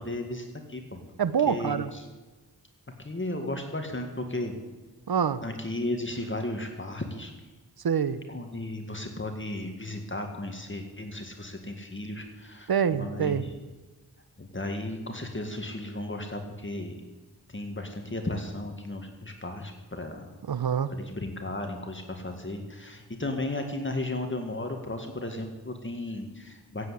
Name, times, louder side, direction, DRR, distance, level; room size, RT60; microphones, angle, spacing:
voice 1, 0.0-1.0 1.5-2.1 3.0-4.5 5.4-7.3 8.3-13.6 14.4-17.1 17.5-20.3 20.9-26.9, left 1 dB, 30° left, 4 dB, 2.0 m, -35 dB
voice 2, 1.2-1.9 5.1-5.4 7.8-8.2 12.7-13.4 20.5-20.9, right 7 dB, 65° right, 15 dB, 0.9 m, -25 dB
16.0 x 8.2 x 8.2 m, 1.3 s
wide cardioid pair, 60°, 40 cm